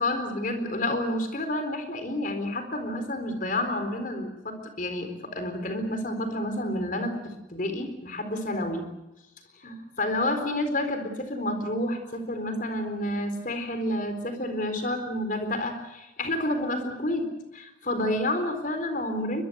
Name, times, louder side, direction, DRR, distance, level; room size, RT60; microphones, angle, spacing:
voice 1, 0.0-8.9 9.6-17.3 17.5-19.4, left 1 dB, 50° left, 7 dB, 4.2 m, -29 dB
22.5 x 22.0 x 8.0 m, 0.95 s
head